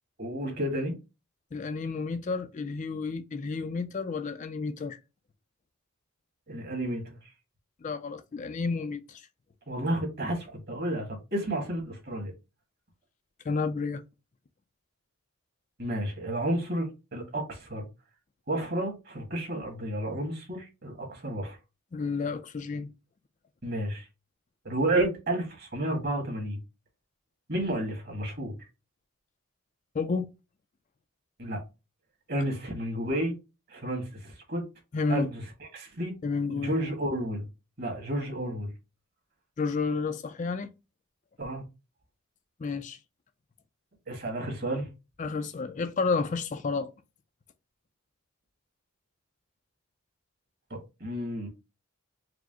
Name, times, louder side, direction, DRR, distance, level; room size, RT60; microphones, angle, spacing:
voice 1, 0.2-0.9 6.5-7.2 9.7-12.3 15.8-17.9 18.5-21.6 23.6-24.1 24.7-26.6 27.5-28.6 31.4-31.6 32.3-33.3 33.7-34.7 35.1-35.4 35.7-36.2 36.5-37.5 37.8-38.7 41.4-41.6 44.1-44.9 50.7-51.5, right 1 dB, 50° right, 1.7 m, -31 dB
voice 2, 1.5-5.0 7.8-9.3 13.4-14.0 21.9-22.9 29.9-30.3 34.9-35.3 36.2-36.8 39.6-40.7 42.6-43.0 45.2-46.9, left 4 dB, 35° left, 0.4 m, -31 dB
4.8 x 2.1 x 3.6 m
head